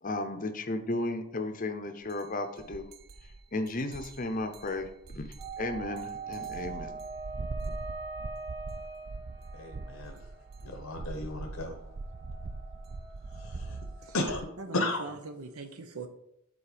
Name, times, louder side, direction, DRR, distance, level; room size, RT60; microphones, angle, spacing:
voice 1, 0.0-2.9 3.5-7.0, left 2 dB, 35° left, 8 dB, 0.6 m, -34 dB
sound 1, 2.1-2.2 2.6-14.4, right 3 dB, 45° right, 0.4 m, -42 dB
sound 2, 5.4-14.1, right 4 dB, 10° right, 1.0 m, -43 dB
voice 2, 9.5-10.2 10.6-11.8 13.4-13.8 14.1-15.2, left 2 dB, 70° left, 2 dB, 0.8 m, -34 dB
voice 3, 14.6-16.1, right 3 dB, 90° right, 7 dB, 0.9 m, -41 dB
7.3 x 4.2 x 5.0 m, 0.80 s
head